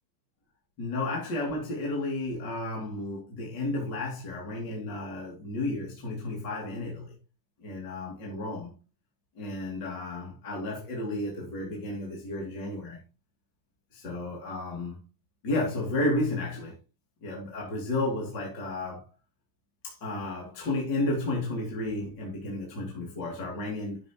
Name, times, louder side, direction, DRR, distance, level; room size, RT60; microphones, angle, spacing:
voice 1, 0.8-7.1 7.6-8.7 9.4-13.0 13.9-15.0 15.4-16.7 17.2-19.1 19.8-24.0, left 2 dB, 30° left, 3.1 m, -32 dB
12.5 x 7.4 x 3.1 m
omnidirectional pair, 4.4 m